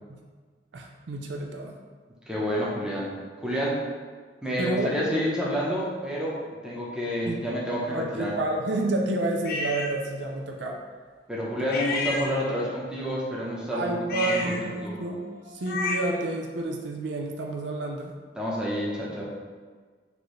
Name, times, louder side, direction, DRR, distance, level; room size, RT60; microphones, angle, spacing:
voice 1, 0.7-1.7 4.6-5.0 7.3-7.4 7.9-10.8 13.7-15.2 15.5-18.1, right 2 dB, 80° right, 2 dB, 0.5 m, -29 dB
voice 2, 2.3-3.1 3.4-3.8 4.4-6.4 6.6-8.3 11.3-14.6 14.8-14.9 18.4-19.3, equal, 5° right, -5 dB, 0.8 m, -29 dB
sound 1, 9.4-10.0 11.7-12.8 14.0-16.3, left 3 dB, 55° left, 0.4 m, -32 dB
4.5 x 2.7 x 3.1 m, 1.5 s
head